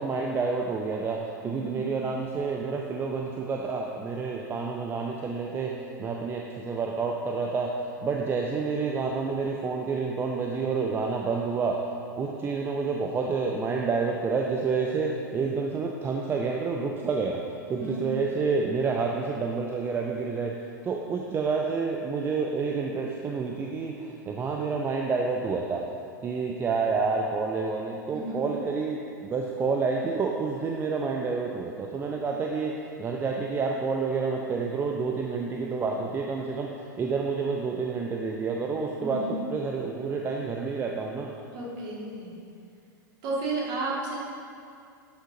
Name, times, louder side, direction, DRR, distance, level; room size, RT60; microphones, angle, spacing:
voice 1, 0.0-5.7 6.0-7.7 8.0-11.8 12.2-17.4 17.7-20.5 20.8-25.8 26.2-36.7 37.0-41.3, right 4 dB, 20° right, 0 dB, 0.5 m, -29 dB
voice 2, 1.4-1.8 17.7-18.0 28.1-28.4 39.0-39.3 41.5-42.4 43.2-44.1, right 2 dB, 40° right, -4 dB, 2.0 m, -33 dB
11.5 x 6.2 x 2.8 m, 2.4 s
figure-of-eight pair, 90°, 11 cm